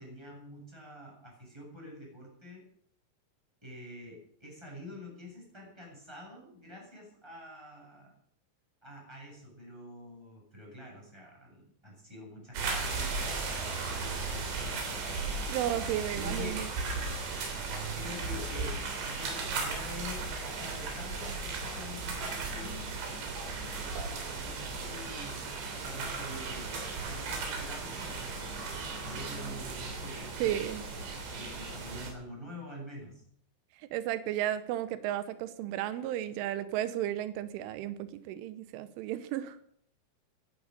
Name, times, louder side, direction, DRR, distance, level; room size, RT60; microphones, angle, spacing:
voice 1, 0.0-2.6 3.6-8.1 8.8-15.3 16.1-16.6 17.9-22.9 23.7-33.2, left 1 dB, 5° right, -2 dB, 7.5 m, -47 dB
sound 1, 12.5-32.1, right 4 dB, 70° right, 5.5 m, -36 dB
voice 2, 15.5-16.7 30.4-30.8 33.9-39.6, right 12 dB, 90° right, 13 dB, 3.4 m, -33 dB
16.0 x 12.5 x 6.6 m, 0.63 s
omnidirectional pair, 5.5 m